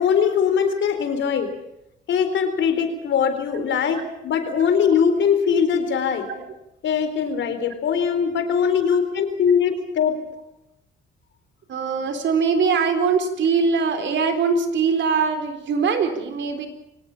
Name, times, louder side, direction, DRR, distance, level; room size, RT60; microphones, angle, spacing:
voice 1, 0.0-1.5 2.1-6.3 6.8-10.2, left 7 dB, 70° left, 9 dB, 4.2 m, -21 dB
voice 2, 11.7-16.7, right 5 dB, 70° right, 8 dB, 4.1 m, -22 dB
24.0 x 18.5 x 7.3 m, 0.84 s
cardioid pair, 90°, 20 cm